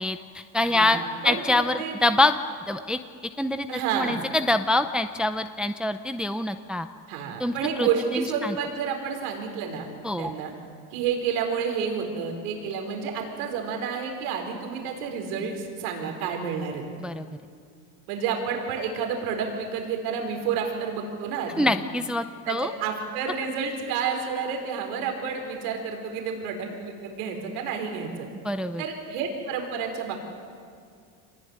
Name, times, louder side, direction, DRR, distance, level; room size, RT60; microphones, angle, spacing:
voice 1, 0.0-1.0 1.2-2.4 2.7-3.0 3.4-6.9 7.4-8.6 10.0-10.3 17.0-17.3 21.6-22.7 28.4-28.8, left 2 dB, ahead, 9 dB, 0.6 m, -25 dB
voice 2, 0.6-2.0 3.7-4.2 7.1-9.9 10.2-10.5 10.9-16.8 18.1-21.7 22.5-28.3 28.8-30.2, right 6 dB, 85° right, 3 dB, 4.6 m, -30 dB
25.5 x 20.5 x 9.7 m, 2.2 s
supercardioid pair, 120°, 42 cm